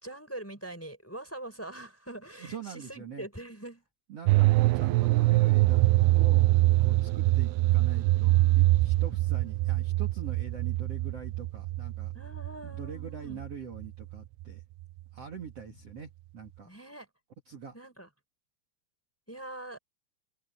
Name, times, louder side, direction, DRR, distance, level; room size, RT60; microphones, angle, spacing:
voice 1, 0.0-3.8 12.1-13.4 16.6-17.1 17.7-18.1 19.3-19.8, right 1 dB, 5° left, 4.1 m, -43 dB
voice 2, 2.4-3.3 4.1-5.8 6.1-12.1 12.6-14.6 15.1-16.7 17.5-17.8, right 6 dB, 45° right, 2.9 m, -43 dB
sound 1, 4.3-14.1 14.4-14.5, right 19 dB, 80° right, 2.5 m, -24 dB
open air
omnidirectional pair, 4.6 m